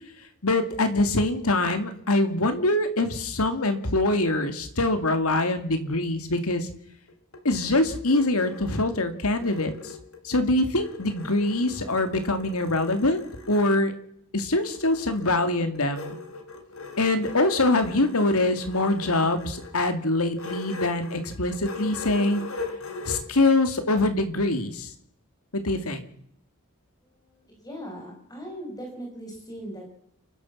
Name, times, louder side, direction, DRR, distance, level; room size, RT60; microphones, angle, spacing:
voice 1, 0.4-6.7 7.4-9.9 10.2-13.9 14.3-16.2 17.0-22.4 23.1-24.9 25.5-26.1, left 2 dB, 80° left, 8 dB, 2.4 m, -24 dB
sound 1, 7.1-10.4 10.8-13.7 14.6-23.2, left 3 dB, 65° left, 3.6 m, -40 dB
voice 2, 27.0-29.9, equal, 15° left, 0 dB, 6.2 m, -39 dB
29.5 x 12.0 x 7.3 m, 0.71 s
head